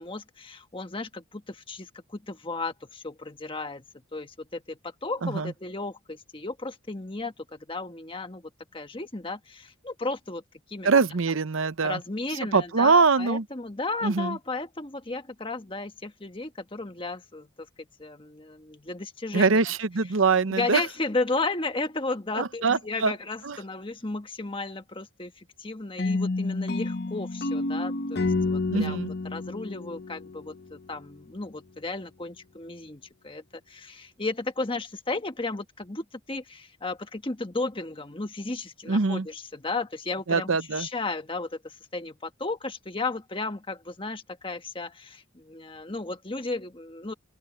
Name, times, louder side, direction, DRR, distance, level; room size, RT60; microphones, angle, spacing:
voice 1, 0.0-3.8 4.1-10.4 10.7-10.9 11.8-17.7 18.0-19.6 20.5-29.0 29.3-47.1, left 3 dB, 25° left, 1.4 m, -34 dB
voice 2, 5.2-5.5 10.8-12.0 12.5-13.5 14.0-14.4 19.3-20.8 22.4-23.1 23.4-23.6 28.7-29.1 38.9-39.3 40.3-40.9, right 4 dB, 70° right, 0.8 m, -23 dB
sound 1, 26.0-30.9, left 3 dB, 50° left, 0.9 m, -29 dB
open air
head